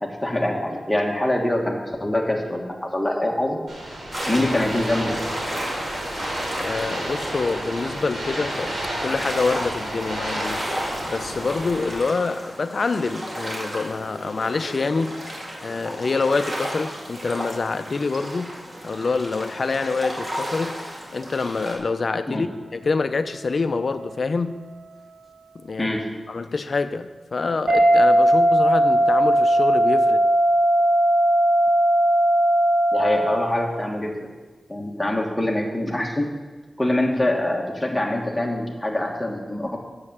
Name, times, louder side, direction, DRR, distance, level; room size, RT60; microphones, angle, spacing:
voice 1, 0.0-3.6 4.3-5.1 22.3-22.4 25.8-26.1 32.9-34.3 34.7-36.3 36.8-39.8, left 1 dB, 10° left, -1 dB, 1.6 m, -24 dB
sound 1, 3.7-11.9, right 1 dB, 75° right, 3.3 m, -31 dB
sound 2, 4.1-21.8, equal, 30° right, 2.1 m, -33 dB
voice 2, 6.5-8.7 9.0-20.8 21.1-24.7 25.6-26.0 26.3-30.2, left 4 dB, 50° left, 10 dB, 0.5 m, -26 dB
sound 3, 22.4-25.6 27.7-33.8, right 1 dB, 50° right, 3.4 m, -20 dB
8.7 x 6.7 x 7.2 m, 1.3 s
wide cardioid pair, 120°, 0 cm